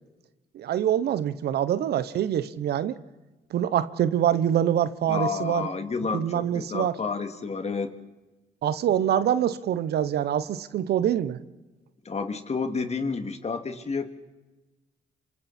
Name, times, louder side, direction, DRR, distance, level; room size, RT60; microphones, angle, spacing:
voice 1, 0.5-3.0 3.5-5.7 6.1-6.9 8.6-11.4, right 10 dB, 75° right, 15 dB, 1.0 m, -25 dB
voice 2, 5.1-7.9 12.0-14.1, left 4 dB, 40° left, 7 dB, 2.4 m, -30 dB
26.5 x 26.0 x 4.4 m, 1.1 s
supercardioid pair, 65°, 17 cm